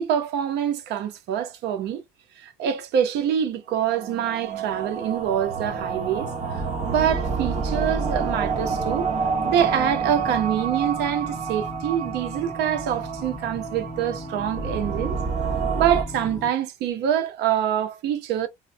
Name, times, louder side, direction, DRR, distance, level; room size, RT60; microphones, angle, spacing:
voice 1, 0.0-2.0 2.4-9.1 9.4-15.2 15.7-18.5, right 9 dB, 80° right, 0.6 m, -25 dB
sound 1, 3.8-16.0, right 5 dB, 45° right, 0.8 m, -29 dB
sound 2, 5.2-16.5, right 1 dB, 15° left, 0.7 m, -37 dB
3.1 x 2.0 x 2.6 m
cardioid pair, 110°, 17 cm